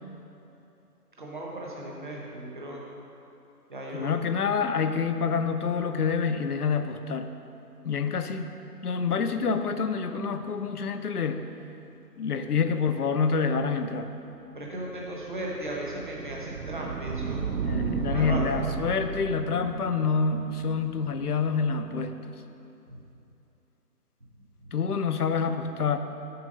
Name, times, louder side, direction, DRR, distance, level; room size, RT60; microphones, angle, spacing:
voice 1, 1.2-2.8 3.7-4.3 14.5-17.4 18.1-18.6 22.9-23.0 24.6-24.7, right 1 dB, 30° right, -3 dB, 1.0 m, -36 dB
voice 2, 3.9-7.3 7.8-8.5 8.8-11.5 12.2-14.1 17.6-22.4 24.7-26.0, left 5 dB, 70° left, 9 dB, 0.7 m, -27 dB
sound 1, 14.9-21.8, right 5 dB, 90° right, 0.7 m, -34 dB
7.0 x 6.1 x 5.2 m, 2.9 s
figure-of-eight pair, 170°, 48 cm